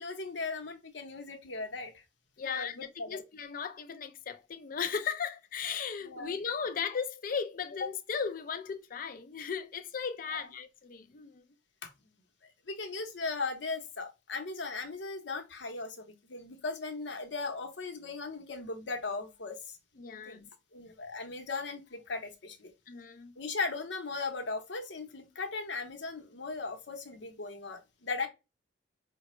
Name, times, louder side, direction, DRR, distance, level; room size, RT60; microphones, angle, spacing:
voice 1, 0.0-2.0 2.4-3.2 6.0-6.4 10.3-10.4 11.8-11.9 12.7-19.8 20.2-20.4 20.7-22.7 23.4-28.3, left 3 dB, 75° left, 0.9 m, -38 dB
voice 2, 2.4-11.4 20.0-20.5 22.9-23.3, left 6 dB, 50° left, 0.5 m, -36 dB
5.1 x 2.2 x 3.0 m
head